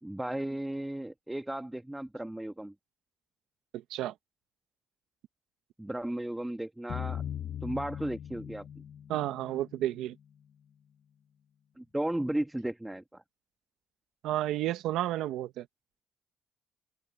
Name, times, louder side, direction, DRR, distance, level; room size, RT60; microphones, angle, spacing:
voice 1, 0.0-2.7 5.8-7.2 7.6-8.7 11.8-13.2, right 1 dB, 10° right, 1.4 m, -35 dB
voice 2, 3.7-4.1 9.1-10.2 14.2-15.7, right 13 dB, 90° right, 1.2 m, -31 dB
sound 1, 6.9-10.0, left 10 dB, 60° left, 0.7 m, -39 dB
open air
cardioid pair, 90°, 0 cm